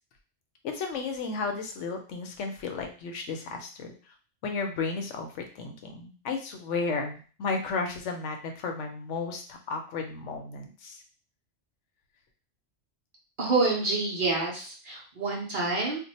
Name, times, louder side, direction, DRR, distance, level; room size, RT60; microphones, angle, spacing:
voice 1, 0.6-3.9 4.4-11.0, left 4 dB, 75° left, 4 dB, 0.9 m, -33 dB
voice 2, 13.4-16.0, right 3 dB, 50° right, -2 dB, 0.9 m, -27 dB
2.6 x 2.2 x 4.0 m, 0.39 s
omnidirectional pair, 1.3 m